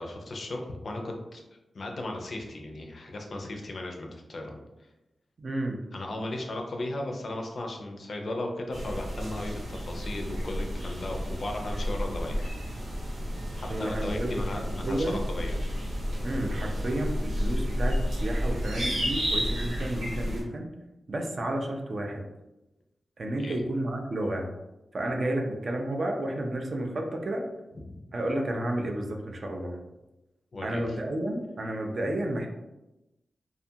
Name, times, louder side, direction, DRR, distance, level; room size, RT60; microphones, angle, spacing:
voice 1, 0.0-1.4 1.7-4.9 5.9-12.5 13.5-15.6 23.4-23.6 30.5-31.0, left 1 dB, 50° left, 2 dB, 0.4 m, -36 dB
voice 2, 5.4-5.8 13.7-14.4 14.8-15.3 16.2-20.7 21.1-22.3 23.2-24.5 24.9-27.5 28.1-29.8 30.6-32.5, right 1 dB, 45° right, 2 dB, 0.3 m, -31 dB
sound 1, 8.7-20.4, equal, 85° right, 0.9 m, -31 dB
2.5 x 2.3 x 2.7 m, 0.98 s
wide cardioid pair, 150°, 0 cm